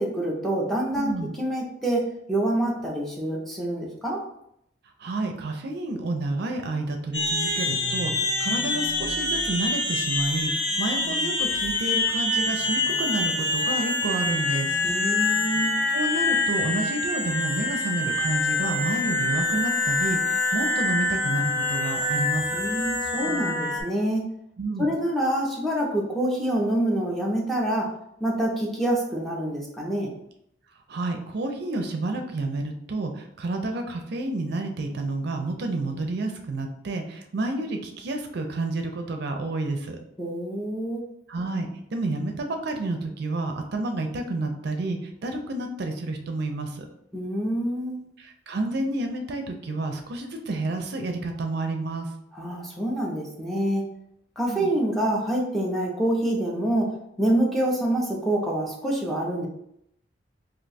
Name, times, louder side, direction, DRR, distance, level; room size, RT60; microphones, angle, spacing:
voice 1, 0.0-4.2 14.8-15.8 22.5-24.2 24.8-27.9 28.2-30.1 40.2-41.0 47.1-48.0 52.4-53.8 54.4-56.9 57.2-59.5, right 1 dB, ahead, -2 dB, 0.6 m, -26 dB
voice 2, 0.9-1.3 5.0-14.8 15.9-22.6 24.6-24.9 30.9-40.0 41.3-46.9 48.2-52.1 54.5-54.7, right 2 dB, 60° right, 4 dB, 0.4 m, -30 dB
sound 1, 7.1-23.8, left 2 dB, 70° left, 0.8 m, -26 dB
2.7 x 2.2 x 4.0 m, 0.76 s
head